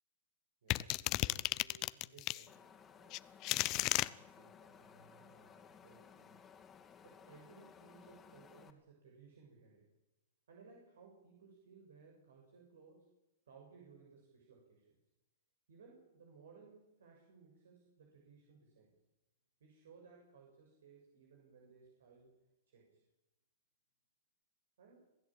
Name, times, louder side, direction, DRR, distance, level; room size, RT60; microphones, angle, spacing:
voice 1, 0.6-2.6 3.0-3.2 3.6-6.4 7.0-9.9 10.5-13.1 13.5-15.0 15.7-18.9 19.6-22.3 22.7-23.0 24.8-25.0, right 5 dB, 85° right, 0 dB, 6.9 m, -61 dB
sound 1, 0.7-2.4 3.1-4.1, left 20 dB, 40° left, 0.8 m, -34 dB
Wind, 2.5-8.7, left 7 dB, 20° left, 2.6 m, -59 dB
27.0 x 16.5 x 9.0 m, 0.97 s
hypercardioid pair, 130°, 0 cm